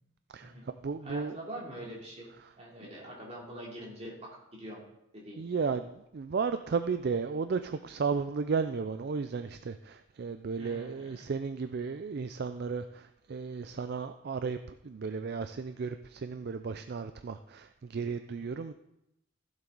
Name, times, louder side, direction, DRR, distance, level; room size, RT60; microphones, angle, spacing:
voice 1, 0.3-1.4 5.4-18.7, right 5 dB, 50° right, 10 dB, 0.4 m, -34 dB
voice 2, 1.0-2.3 2.6-4.1 4.5-4.8 5.1-5.4 10.6-11.3 18.3-18.5, right 1 dB, 35° right, -4 dB, 3.1 m, -44 dB
15.5 x 7.3 x 4.0 m, 0.86 s
head